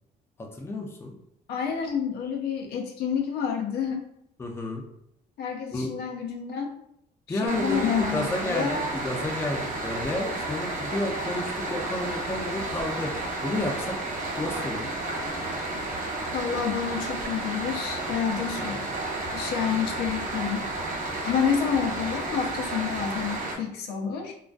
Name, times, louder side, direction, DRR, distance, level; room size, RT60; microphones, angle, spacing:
voice 1, 0.4-1.1 4.4-4.8 5.7-5.9 7.3-8.8 9.0-14.0 14.4-14.9, left 1 dB, 15° left, 2 dB, 0.4 m, -31 dB
voice 2, 1.5-4.1 5.4-6.7 7.3-8.9 16.3-19.0 19.3-20.7 21.2-24.3, left 7 dB, 75° left, 2 dB, 0.5 m, -29 dB
sound 1, 7.5-23.6, right 2 dB, 50° right, 0.6 m, -32 dB
2.3 x 2.2 x 2.4 m, 0.74 s
cardioid pair, 110°, 17 cm